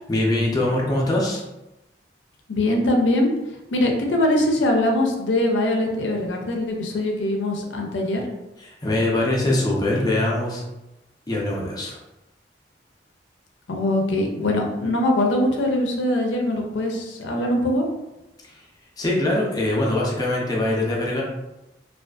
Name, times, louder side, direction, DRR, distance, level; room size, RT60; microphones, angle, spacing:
voice 1, 0.1-1.4 8.6-10.6 11.3-12.0 19.0-21.2, left 1 dB, 20° left, -3 dB, 0.5 m, -22 dB
voice 2, 2.5-3.3 3.7-8.2 13.7-17.9, left 1 dB, 90° left, 1 dB, 0.5 m, -22 dB
2.5 x 2.4 x 2.3 m, 0.96 s
head